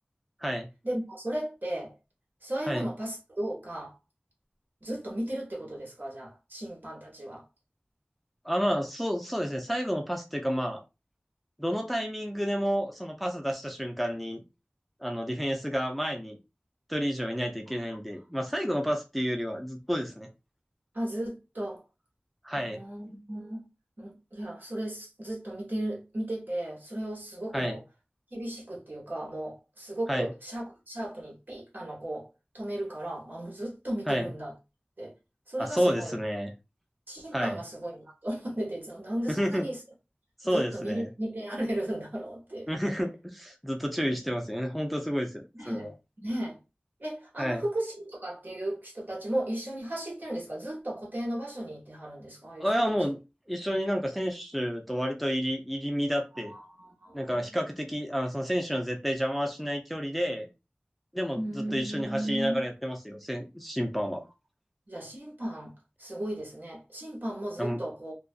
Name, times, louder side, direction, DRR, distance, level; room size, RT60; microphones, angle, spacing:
voice 1, 0.8-1.9 2.4-3.9 4.8-7.4 20.9-21.8 22.5-23.7 24.0-27.8 28.3-32.3 32.5-34.5 35.0-35.1 35.5-36.2 37.1-39.8 40.4-42.7 45.5-45.9 46.2-46.6 47.0-52.7 56.4-57.5 61.3-62.6 64.9-65.7 66.0-68.1, right 1 dB, 60° right, 1.1 m, -35 dB
voice 2, 8.4-10.8 11.6-14.4 15.0-16.4 16.9-20.3 22.4-22.8 27.5-27.8 30.1-30.3 34.1-34.3 35.6-36.5 37.3-37.6 39.3-39.7 40.4-41.1 42.7-45.9 47.4-47.6 52.6-53.2 53.5-56.5 57.1-60.5 61.1-64.2 67.6-67.8, equal, ahead, 0.4 m, -30 dB
2.4 x 2.3 x 2.3 m
wide cardioid pair, 40°, 4 cm